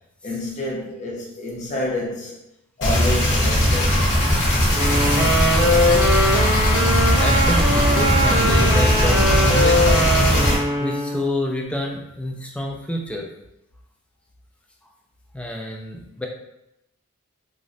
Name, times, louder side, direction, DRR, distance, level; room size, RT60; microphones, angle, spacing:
voice 1, 0.2-2.4 2.8-4.0, left 1 dB, 35° left, -3 dB, 0.7 m, -28 dB
sound 1, 2.8-10.5, equal, 55° left, 1.0 m, -19 dB
sound 2, 4.7-11.3, equal, 15° right, 1.2 m, -21 dB
voice 2, 6.2-10.2 10.8-13.3 15.3-16.3, left 1 dB, 5° left, 0 dB, 0.3 m, -28 dB
3.1 x 2.4 x 2.6 m, 0.86 s
head